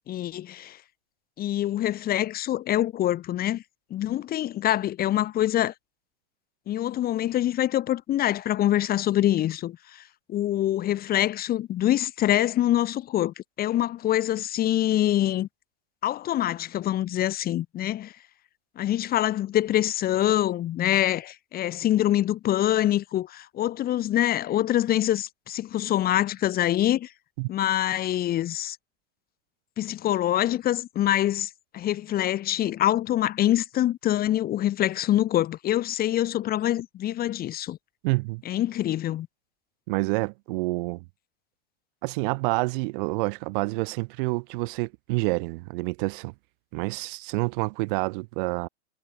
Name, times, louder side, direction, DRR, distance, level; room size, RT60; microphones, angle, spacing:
voice 1, 0.1-0.8 1.4-3.6 3.9-5.7 6.7-10.0 10.3-15.5 16.0-18.1 18.8-27.1 27.5-28.8 29.8-37.8 38.5-39.3, left 13 dB, 25° left, 3.6 m, -25 dB
voice 2, 38.0-38.4 39.9-41.0 42.0-46.3 46.7-48.7, right 27 dB, 50° right, 7.5 m, -28 dB
supercardioid pair, 145°, 33 cm